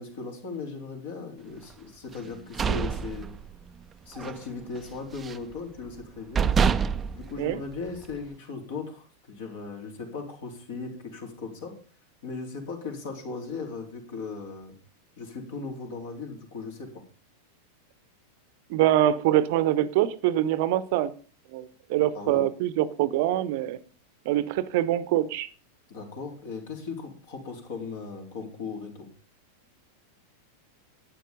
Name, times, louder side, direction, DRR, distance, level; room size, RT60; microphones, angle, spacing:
voice 1, 0.0-3.4 4.1-6.5 7.1-11.8 12.2-14.7 15.2-16.9 22.1-22.5 25.9-29.1, left 4 dB, 55° left, 3.9 m, -37 dB
sound 1, 2.2-3.8 4.1-4.4 4.8-5.5 6.0-6.1 6.3-8.2, right 6 dB, 20° right, 0.5 m, -27 dB
voice 2, 18.7-21.1 21.5-23.8 24.2-25.5, right 13 dB, 50° right, 0.8 m, -24 dB
12.0 x 9.1 x 5.3 m
figure-of-eight pair, 90°, 0 cm